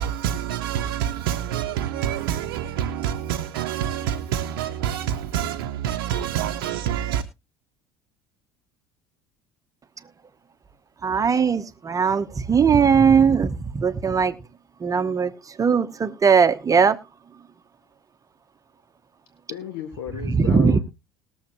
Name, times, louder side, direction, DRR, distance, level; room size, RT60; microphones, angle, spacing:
voice 1, 0.0-7.2, right 10 dB, 70° right, 0.7 m, -27 dB
voice 2, 11.0-14.3 14.8-17.0 20.2-20.8, right 6 dB, 30° right, 1.0 m, -19 dB
voice 3, 19.5-20.8, left 9 dB, 70° left, 1.8 m, -34 dB
20.5 x 7.2 x 3.0 m
hypercardioid pair, 65°, 12 cm